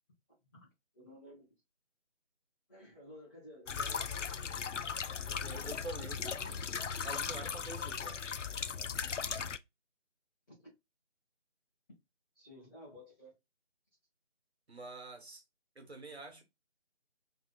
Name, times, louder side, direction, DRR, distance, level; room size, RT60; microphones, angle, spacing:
voice 1, 0.5-1.5 2.7-4.6 10.5-10.7 12.3-13.3, left 1 dB, 15° left, 1.8 m, -55 dB
sound 1, 3.7-9.6, left 6 dB, 85° left, 0.5 m, -38 dB
voice 2, 5.3-6.6 7.0-8.2 14.7-15.4 15.7-16.4, right 3 dB, 60° right, 1.4 m, -46 dB
4.0 x 3.6 x 2.3 m
figure-of-eight pair, 160°, 36 cm